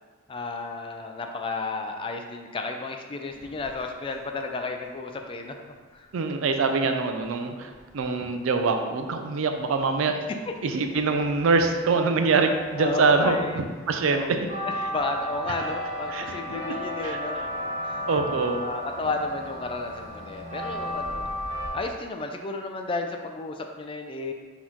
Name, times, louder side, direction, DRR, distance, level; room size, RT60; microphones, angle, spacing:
voice 1, 0.3-5.6 5.9-6.1 10.1-10.2 12.8-13.6 14.1-14.4 14.8-18.1 18.5-21.3 21.7-24.3, left 3 dB, 25° left, 4 dB, 0.3 m, -33 dB
sound 1, 3.3-4.1 7.2-7.3 7.5-21.7, left 1 dB, 40° right, 1.4 m, -36 dB
voice 2, 6.1-10.2 10.6-14.2 16.1-16.2 17.0-17.2 18.1-18.6, right 4 dB, 90° right, 6 dB, 0.4 m, -24 dB
4.1 x 2.9 x 3.8 m, 1.5 s
head